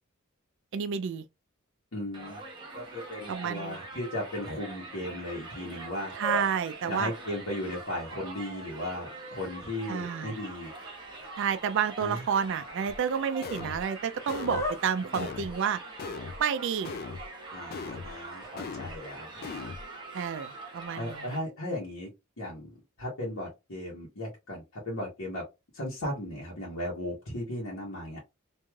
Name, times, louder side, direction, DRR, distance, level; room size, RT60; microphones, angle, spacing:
voice 1, 0.7-1.2 3.3-3.8 6.2-7.1 9.9-10.4 11.4-15.8 16.4-16.9 20.1-21.4, right 7 dB, 60° right, 0.4 m, -30 dB
voice 2, 1.9-2.4 2.7-6.1 6.9-10.7 12.0-12.3 15.2-15.3 17.5-19.4 21.0-22.1 22.4-25.4 25.7-28.2, left 1 dB, 70° left, 1.1 m, -36 dB
Crowd, 2.1-21.4, right 2 dB, 20° right, 0.9 m, -44 dB
sound 1, 5.4-17.3, left 2 dB, 15° left, 0.7 m, -44 dB
sound 2, 12.9-13.0 13.4-13.8 14.3-14.7 15.1-15.6 16.0-16.4 16.8-17.3 17.7-18.1 18.6-19.0 19.4-19.8, left 5 dB, 45° left, 0.3 m, -39 dB
3.1 x 2.6 x 2.3 m
head